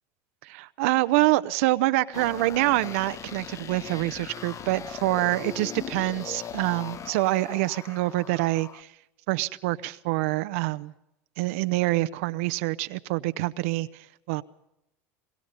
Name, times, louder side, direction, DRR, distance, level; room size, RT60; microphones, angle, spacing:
voice 1, 0.4-8.9 9.3-10.9 11.4-14.4, right 19 dB, 75° right, 0.8 m, -26 dB
sound 1, 2.1-8.8, left 8 dB, 45° left, 1.1 m, -39 dB
22.5 x 22.0 x 5.4 m
hypercardioid pair, 95°, 7 cm